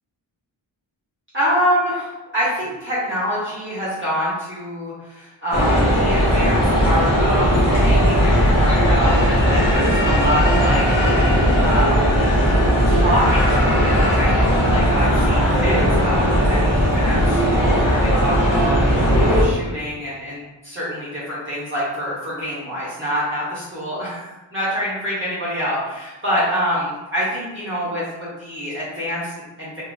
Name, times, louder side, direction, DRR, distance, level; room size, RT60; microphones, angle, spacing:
voice 1, 1.3-12.1 12.9-29.8, equal, 25° right, -10 dB, 0.9 m, -26 dB
sound 1, 5.5-19.5, equal, 70° left, 1.2 m, -17 dB
3.0 x 2.3 x 2.3 m, 1.1 s
wide cardioid pair, 85°, 45 cm